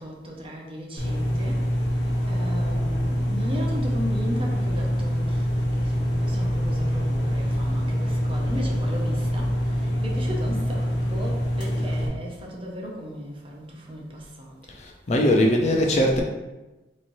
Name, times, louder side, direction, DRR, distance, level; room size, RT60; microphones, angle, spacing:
voice 1, 0.0-14.7, equal, 30° right, 0.6 m, -36 dB
sound 1, 1.0-12.1, equal, 80° left, 0.9 m, -25 dB
voice 2, 14.8-16.2, left 1 dB, 40° left, 0.5 m, -20 dB
4.1 x 3.0 x 2.6 m
head